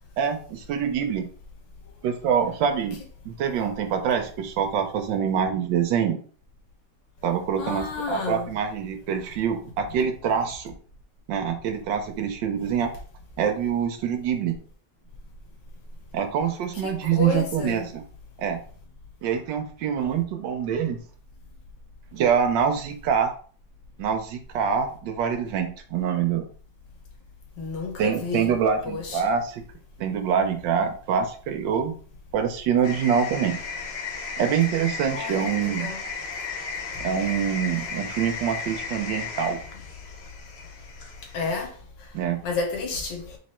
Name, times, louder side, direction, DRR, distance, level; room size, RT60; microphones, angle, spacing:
voice 1, 0.2-1.3 2.0-3.0 3.2-6.2 7.2-10.7 11.3-12.9 13.4-14.5 16.1-18.0 18.4-18.6 19.2-21.0 22.1-23.3 24.0-26.4 28.0-29.6 30.0-31.9 32.3-33.6 34.4-35.9 37.0-39.6 42.1-42.4, right 7 dB, 85° right, 1.4 m, -25 dB
voice 2, 7.6-8.5 16.8-17.9 27.6-28.6 28.9-29.3 35.1-36.0 41.3-41.7 42.4-43.4, left 4 dB, 75° left, 1.7 m, -31 dB
sound 1, 32.8-41.6, left 4 dB, 55° left, 0.7 m, -35 dB
3.6 x 3.2 x 4.2 m
omnidirectional pair, 2.0 m